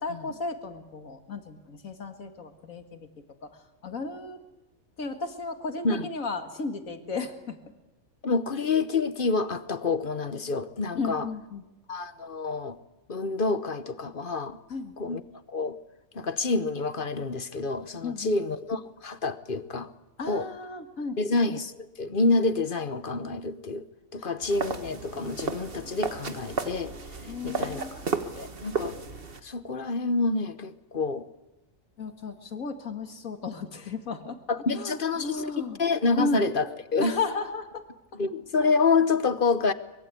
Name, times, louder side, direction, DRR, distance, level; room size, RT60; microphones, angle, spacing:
voice 1, 0.0-3.1 3.4-3.5 3.8-4.4 5.0-7.6 10.9-11.6 14.7-15.0 18.0-18.4 20.2-21.2 24.2-24.3 27.3-27.9 32.0-34.4 34.7-35.8 36.1-36.4 37.0-37.8 38.1-38.2, left 3 dB, 75° left, 6 dB, 2.3 m, -34 dB
voice 2, 8.2-11.3 11.9-12.8 13.1-14.6 15.0-15.2 15.5-15.8 16.1-19.9 20.3-20.5 21.2-23.9 24.1-26.9 27.4-28.0 28.4-29.0 29.4-31.3 34.5-35.4 35.8-37.1 38.2-39.7, left 3 dB, 40° left, 12 dB, 1.1 m, -27 dB
sound 1, 24.4-29.4, right 4 dB, 45° right, 1.5 m, -34 dB
24.0 x 22.0 x 8.4 m, 0.98 s
omnidirectional pair, 1.4 m